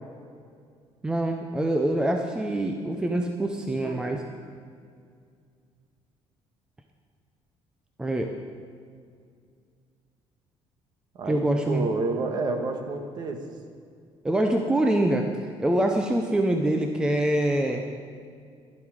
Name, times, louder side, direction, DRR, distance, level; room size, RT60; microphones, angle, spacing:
voice 1, 1.0-4.2 8.0-8.3 11.3-11.9 14.2-15.3 15.6-17.8, right 1 dB, 10° right, 4 dB, 0.6 m, -25 dB
voice 2, 11.2-13.4, right 3 dB, 40° right, 5 dB, 1.3 m, -29 dB
12.0 x 11.0 x 4.8 m, 2.2 s
cardioid pair, 170°, 10 cm